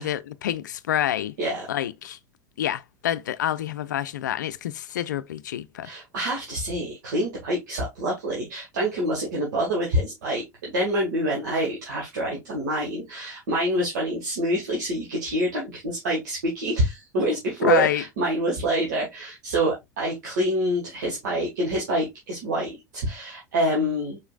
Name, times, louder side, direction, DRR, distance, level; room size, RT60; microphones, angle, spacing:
voice 1, 0.0-1.3 1.7-2.2 2.6-5.9 17.6-18.0, left 11 dB, 75° left, 0.4 m, -27 dB
voice 2, 5.8-24.2, right 1 dB, 70° right, 1.8 m, -26 dB
4.9 x 4.2 x 2.4 m
figure-of-eight pair, 80°, 10 cm